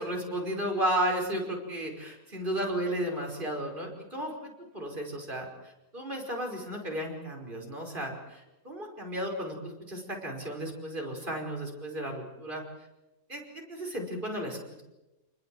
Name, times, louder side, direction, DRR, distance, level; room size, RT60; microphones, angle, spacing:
voice 1, 0.0-12.6 13.3-13.4 13.7-14.8, right 1 dB, 35° right, 1 dB, 5.6 m, -34 dB
29.0 x 21.0 x 7.8 m, 1.0 s
omnidirectional pair, 1.5 m